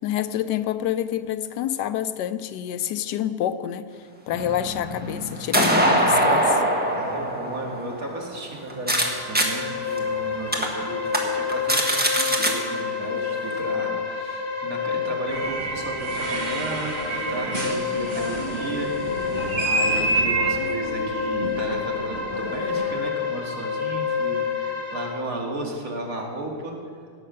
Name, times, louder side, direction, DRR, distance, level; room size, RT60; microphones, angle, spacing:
voice 1, 0.0-3.9 4.3-6.6, left 11 dB, 90° left, 12 dB, 1.2 m, -27 dB
sound 1, 4.3-9.0 9.3-9.5 10.0-10.1 10.5-10.7 11.1-11.2 11.5-12.5, right 1 dB, 5° right, 1.3 m, -22 dB
voice 2, 5.7-6.4 6.9-18.9 19.2-19.3 19.6-26.8, right 2 dB, 55° right, 0 dB, 2.4 m, -34 dB
sound 2, 8.8-25.1, left 5 dB, 40° left, 2.0 m, -29 dB
sound 3, 15.3-23.0, right 2 dB, 30° right, 1.1 m, -29 dB
17.5 x 6.6 x 6.6 m, 2.3 s
omnidirectional pair, 1.8 m